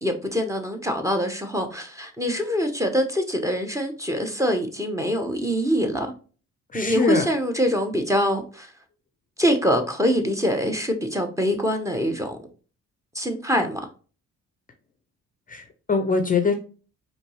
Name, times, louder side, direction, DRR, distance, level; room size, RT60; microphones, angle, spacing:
voice 1, 0.0-6.1 6.7-8.7 9.4-12.4 13.1-13.8, equal, 10° right, 0.8 m, -24 dB
voice 2, 6.7-7.3 15.5-16.5, left 4 dB, 30° left, 0.5 m, -23 dB
4.4 x 2.7 x 3.0 m
cardioid pair, 90°, 30 cm